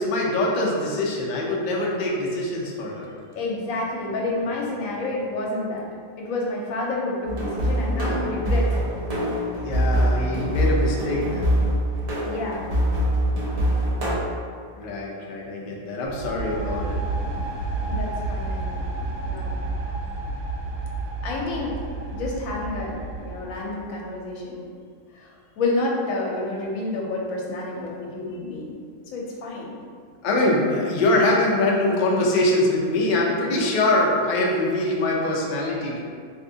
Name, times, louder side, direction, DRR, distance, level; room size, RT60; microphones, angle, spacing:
voice 1, 0.0-3.1 8.0-8.2 9.5-11.5 14.8-17.0 30.2-36.0, left 2 dB, 60° left, -3 dB, 0.4 m, -23 dB
voice 2, 3.3-5.9 6.2-8.9 12.2-12.9 15.6-15.8 16.1-16.3 16.7-16.9 17.2-19.5 20.0-20.1 21.2-21.8 22.1-24.6 25.1-28.8 29.1-29.8, left 2 dB, 80° left, -2 dB, 1.0 m, -30 dB
sound 1, 7.3-14.1, equal, 60° right, 0.4 m, -23 dB
sound 2, 16.0-23.8, right 3 dB, 80° right, 1.0 m, -30 dB
3.4 x 2.7 x 2.6 m, 2.1 s
omnidirectional pair, 1.4 m